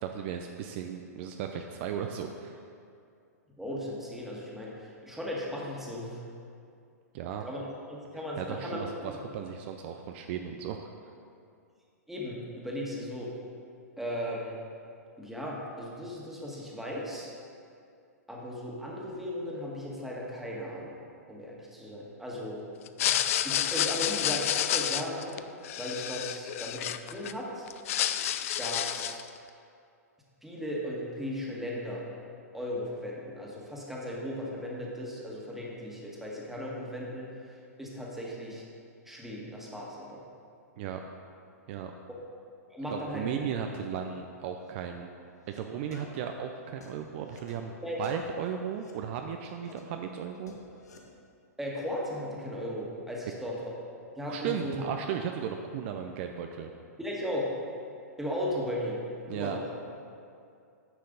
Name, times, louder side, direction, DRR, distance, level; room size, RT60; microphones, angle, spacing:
voice 1, 0.0-2.6 7.1-7.5 8.4-10.8 40.8-41.0 41.7-41.9 42.9-45.1 45.5-47.7 48.0-50.6 54.3-56.7 59.3-59.6, right 8 dB, 45° right, 5 dB, 0.5 m, -35 dB
voice 2, 3.6-6.2 7.4-7.6 7.9-9.2 12.1-13.3 14.0-14.6 15.2-17.3 18.3-21.0 21.3-22.6 23.0-25.4 25.7-27.7 28.6-29.2 30.4-32.0 32.5-38.6 39.0-40.2 42.7-43.3 47.8-48.0 51.6-53.6 54.2-54.9 57.0-57.5 58.2-59.0 59.3-59.6, equal, 5° right, -4 dB, 1.7 m, -36 dB
sound 1, 22.9-27.3 27.7-29.3, left 11 dB, 55° left, 0.4 m, -29 dB
sound 2, 44.5-44.7 45.2-45.6 45.9-49.0 49.4-51.0, left 3 dB, 80° left, 1.2 m, -53 dB
10.0 x 6.5 x 4.0 m, 2.4 s
hypercardioid pair, 115°, 9 cm